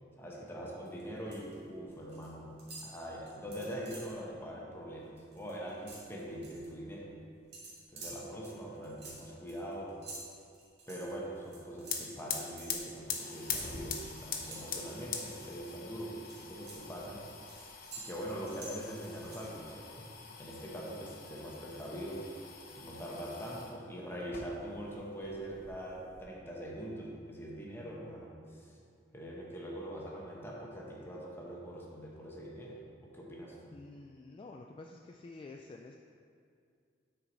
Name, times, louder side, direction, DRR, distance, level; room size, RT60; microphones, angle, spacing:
voice 1, 0.2-7.1 7.9-10.0 10.9-17.3 18.0-20.1 20.4-22.3 22.8-28.7 29.1-33.8, equal, 15° left, -3 dB, 1.0 m, -43 dB
sound 1, 0.9-1.5 1.8-2.3 2.6-4.2 4.6-4.8 5.1-6.7 7.5-15.7 16.1-19.7, right 3 dB, 60° right, 1.9 m, -50 dB
sound 2, 11.5-11.6 11.8-23.8 24.2-25.0 25.2-26.2, left 6 dB, 55° left, 0.8 m, -43 dB
voice 2, 33.7-36.0, left 3 dB, 30° left, 2 dB, 0.3 m, -49 dB
9.6 x 4.6 x 4.0 m, 2.3 s
head